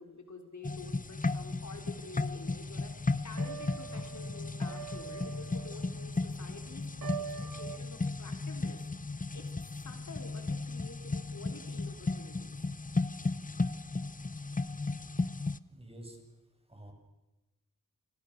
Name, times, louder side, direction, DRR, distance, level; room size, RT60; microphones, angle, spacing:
voice 1, 0.0-6.9 7.2-8.8 9.3-12.6, left 3 dB, 55° left, 5 dB, 4.0 m, -49 dB
sound 1, 0.6-15.6, left 3 dB, 25° left, 0.9 m, -35 dB
sound 2, 1.3-7.8, right 8 dB, 85° right, 1.6 m, -46 dB
voice 2, 15.7-16.2 16.7-16.9, right 1 dB, 15° right, 3 dB, 8.0 m, -48 dB
29.5 x 26.5 x 6.8 m, 1.0 s
wide cardioid pair, 85°, 34 cm